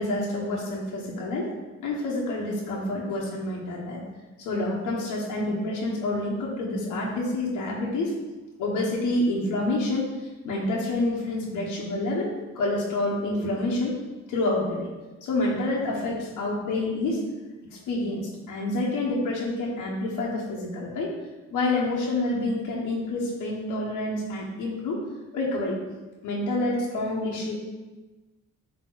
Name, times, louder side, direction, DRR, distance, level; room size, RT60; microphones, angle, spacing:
voice 1, 0.0-1.5 1.8-4.0 4.4-8.1 8.6-10.0 10.4-14.0 14.3-14.9 15.2-17.2 17.7-21.1 21.5-25.0 25.3-25.8 26.2-27.5, left 2 dB, 90° left, -4 dB, 1.4 m, -28 dB
8.8 x 3.4 x 4.0 m, 1.2 s
cardioid pair, 90°, 30 cm